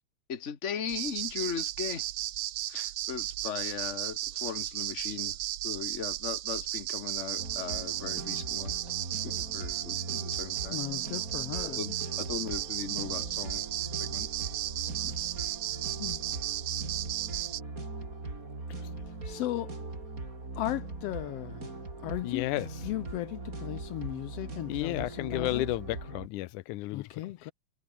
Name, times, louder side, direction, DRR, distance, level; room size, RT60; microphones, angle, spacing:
voice 1, 0.3-2.1 2.7-5.4 5.6-8.8 9.2-10.8 11.6-13.6 14.0-14.3, left 7 dB, 30° left, 1.7 m, -38 dB
sound 1, 0.9-17.6, right 15 dB, 70° right, 2.0 m, -35 dB
sound 2, 7.4-26.3, right 3 dB, 25° right, 4.6 m, -40 dB
voice 2, 10.7-11.8 15.0-15.2 16.0-16.2 19.2-19.7 20.6-21.7 22.0-22.5 22.8-25.6 26.9-27.5, left 16 dB, 70° left, 1.5 m, -36 dB
voice 3, 22.2-22.7 24.7-27.0, left 18 dB, 90° left, 2.2 m, -32 dB
omnidirectional pair, 3.4 m